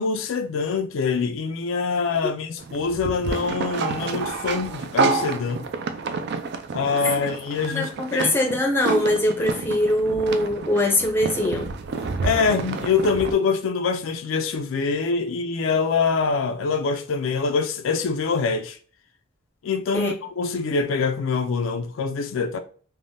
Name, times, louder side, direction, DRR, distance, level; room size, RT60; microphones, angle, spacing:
voice 1, 0.0-5.7 6.7-8.3 12.2-18.8 19.6-22.6, left 5 dB, 75° left, 0.4 m, -24 dB
sound 1, 2.6-13.3, right 4 dB, 55° right, 0.3 m, -29 dB
voice 2, 7.7-11.7 19.9-20.1, left 1 dB, 10° left, 0.5 m, -22 dB
3.3 x 2.1 x 2.5 m
head